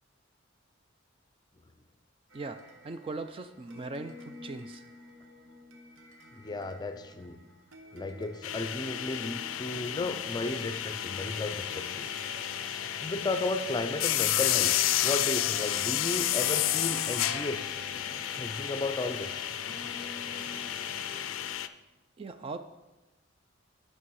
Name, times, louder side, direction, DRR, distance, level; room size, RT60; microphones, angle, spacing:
voice 1, 2.3-4.9 22.2-22.6, right 3 dB, 30° right, 9 dB, 0.3 m, -40 dB
sound 1, 2.3-20.7, left 1 dB, 90° right, 1.0 m, -52 dB
voice 2, 6.3-7.4 7.9-12.2 13.0-14.7 15.0-17.7 18.3-19.5, left 2 dB, 20° left, 8 dB, 0.5 m, -34 dB
sound 2, 8.4-21.7, left 12 dB, 85° left, 0.4 m, -31 dB
sound 3, 10.2-21.2, equal, ahead, 2.0 m, -47 dB
8.5 x 6.2 x 4.7 m, 1.1 s
head